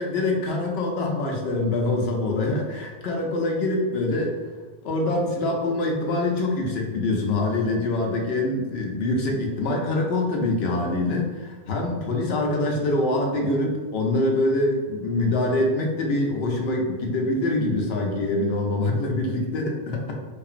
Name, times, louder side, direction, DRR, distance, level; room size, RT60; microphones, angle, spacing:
voice 1, 0.0-4.4 4.8-20.1, left 2 dB, 75° left, 1 dB, 0.8 m, -24 dB
2.8 x 2.4 x 2.4 m, 1.3 s
omnidirectional pair, 1.1 m